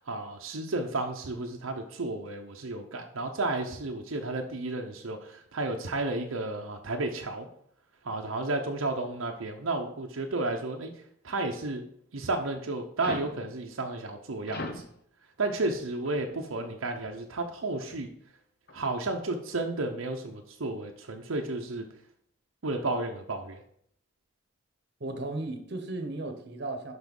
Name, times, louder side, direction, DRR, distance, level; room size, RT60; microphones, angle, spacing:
voice 1, 0.1-7.5 8.0-10.9 11.2-11.8 12.1-14.8 15.4-18.1 18.7-21.8 22.6-23.6, right 2 dB, 90° right, 3 dB, 0.8 m, -32 dB
sound 1, 13.0-13.4 14.5-14.9 16.1-16.3 16.9-17.2 17.8-18.0 18.7-18.9, left 2 dB, 50° left, 0.9 m, -39 dB
voice 2, 25.0-26.9, right 2 dB, 55° right, 5 dB, 1.1 m, -35 dB
6.1 x 5.5 x 5.3 m, 0.67 s
head